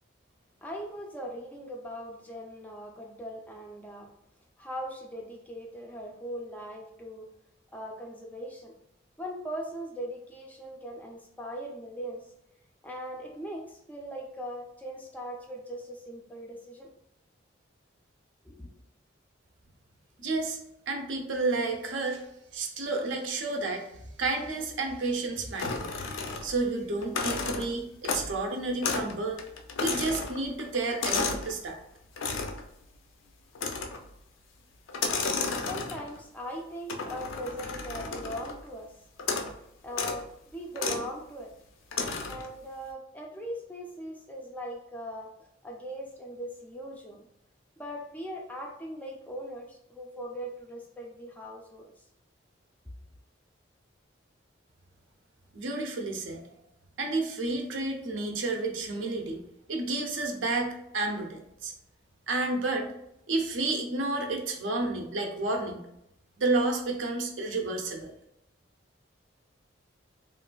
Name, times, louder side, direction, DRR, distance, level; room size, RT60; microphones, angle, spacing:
voice 1, 0.6-4.1 4.6-7.3 7.7-8.7 9.2-12.3 12.8-16.9 18.4-18.7 35.5-39.0 39.8-41.5 42.3-45.3 45.6-47.3 47.8-52.0, equal, 10° left, 0 dB, 0.3 m, -40 dB
voice 2, 20.2-20.6 20.9-22.2 22.5-23.9 24.2-25.9 26.4-29.4 29.8-31.8 55.5-56.5 57.0-59.4 59.7-61.7 62.3-62.9 63.3-65.9 66.4-68.1, right 3 dB, 80° right, 2 dB, 0.5 m, -30 dB
sound 1, 25.6-26.7 27.0-28.4 28.8-29.1 29.4-31.5 32.2-32.7 33.6-34.1 34.9-36.2 36.9-38.6 39.2-39.6 39.9-40.2 40.8-41.1 41.9-42.5, left 4 dB, 85° left, 0.4 m, -32 dB
3.0 x 2.4 x 2.2 m, 0.81 s
head